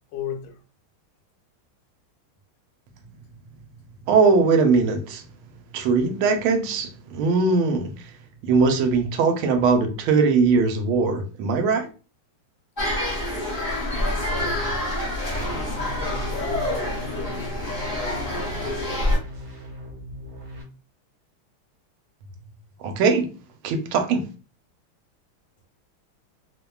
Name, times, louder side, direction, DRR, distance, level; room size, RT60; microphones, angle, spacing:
voice 1, 0.1-0.6 13.8-14.8 15.5-17.9, left 6 dB, 80° left, 1.4 m, -36 dB
voice 2, 4.1-5.2 5.7-8.1 8.4-11.9 22.8-23.3 23.6-24.2, right 4 dB, 80° right, 1.4 m, -20 dB
sound 1, 12.8-19.2, left 1 dB, 30° left, 0.9 m, -27 dB
sound 2, 15.4-20.6, left 1 dB, 60° right, 1.2 m, -39 dB
3.4 x 2.1 x 2.2 m
omnidirectional pair, 2.4 m